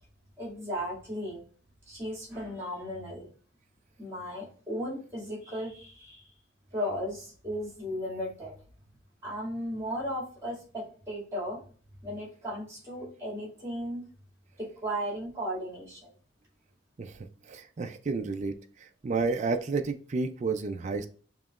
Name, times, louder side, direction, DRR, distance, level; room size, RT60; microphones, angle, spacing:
voice 1, 0.4-1.4 1.9-3.3 4.0-6.3 6.7-8.6 9.2-11.6 12.0-14.0 14.6-16.1, equal, 15° right, -4 dB, 2.1 m, -36 dB
voice 2, 17.0-21.1, right 4 dB, 35° right, 6 dB, 0.3 m, -31 dB
7.0 x 2.9 x 2.4 m, 0.42 s
head